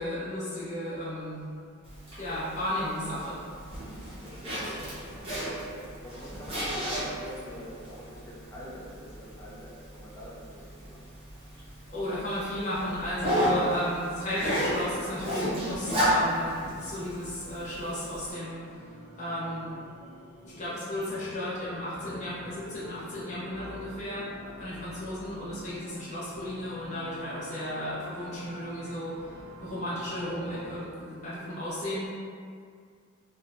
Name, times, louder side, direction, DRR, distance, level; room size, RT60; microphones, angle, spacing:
voice 1, 0.0-1.4 2.2-3.4 11.9-18.6 19.2-19.7 20.4-24.3 24.6-32.1, left 1 dB, 35° left, -10 dB, 0.9 m, -34 dB
Zipper (clothing), 1.8-18.3, equal, 25° right, 0.7 m, -33 dB
voice 2, 4.2-4.9 5.3-11.0, equal, 15° left, -7 dB, 0.5 m, -45 dB
sound 1, 15.9-30.9, equal, 85° right, 0.5 m, -47 dB
2.6 x 2.3 x 2.6 m, 2.2 s
head